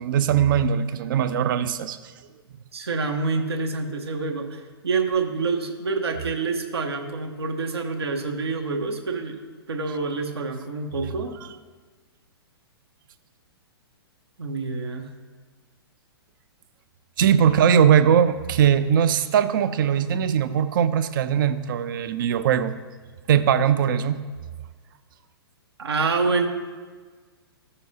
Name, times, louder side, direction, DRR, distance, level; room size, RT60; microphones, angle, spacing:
voice 1, 0.0-2.0 17.2-22.7 23.3-24.2, right 8 dB, 55° right, 12 dB, 0.5 m, -20 dB
voice 2, 2.7-9.4 9.7-11.4 14.4-15.1 25.8-26.5, right 4 dB, 75° right, 3 dB, 1.0 m, -27 dB
13.5 x 6.9 x 2.8 m, 1.4 s
figure-of-eight pair, 115°, 13 cm